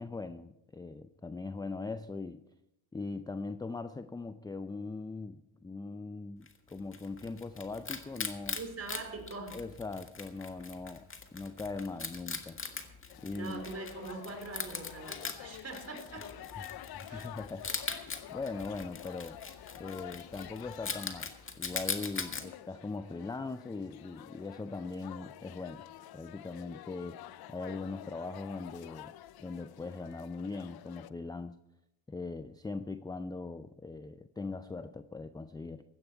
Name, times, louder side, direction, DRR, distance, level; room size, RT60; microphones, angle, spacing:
voice 1, 0.0-2.4 2.9-8.6 9.5-11.1 11.3-12.6 13.2-13.7 17.1-17.7 18.3-19.4 19.8-21.3 21.6-25.8 26.1-27.2 27.5-29.1 29.4-31.6 32.1-35.8, left 3 dB, 10° left, 12 dB, 0.4 m, -40 dB
Wild animals, 6.5-22.4, left 4 dB, 25° left, 1.8 m, -41 dB
voice 2, 8.5-9.6 13.3-16.3 16.6-16.7 17.1-17.3, right 3 dB, 30° right, 4 dB, 4.1 m, -42 dB
sound 1, 13.1-31.1, left 13 dB, 50° left, 0.7 m, -49 dB
16.5 x 11.5 x 4.6 m, 0.85 s
supercardioid pair, 90°, 50 cm